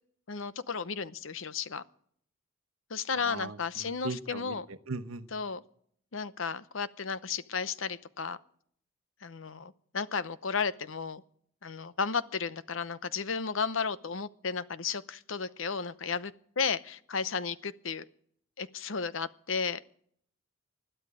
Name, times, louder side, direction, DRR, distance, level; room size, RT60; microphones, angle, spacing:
voice 1, 0.3-1.8 2.9-4.7 5.3-5.6 6.1-8.4 9.2-11.2 11.6-18.0 18.6-19.8, left 5 dB, 70° left, 0.8 m, -34 dB
voice 2, 3.1-5.3, right 3 dB, 75° right, 1.0 m, -39 dB
21.0 x 13.0 x 4.9 m
head